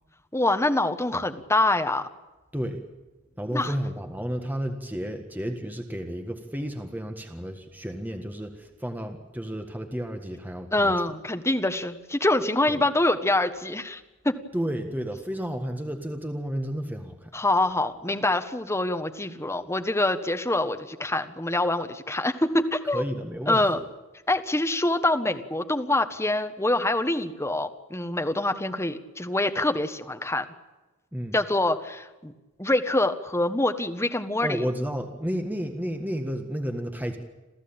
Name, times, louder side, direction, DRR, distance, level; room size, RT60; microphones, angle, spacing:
voice 1, 0.3-2.1 3.5-3.7 10.7-14.4 17.3-23.0 23.5-23.8 24.3-30.4 31.3-32.3 32.6-34.6, left 2 dB, 15° left, 8 dB, 1.4 m, -25 dB
voice 2, 3.4-10.9 12.7-12.8 14.5-17.3 22.9-23.6 31.1-31.4 34.4-37.2, equal, 10° right, 5 dB, 1.6 m, -32 dB
28.0 x 15.0 x 8.9 m, 1.1 s
head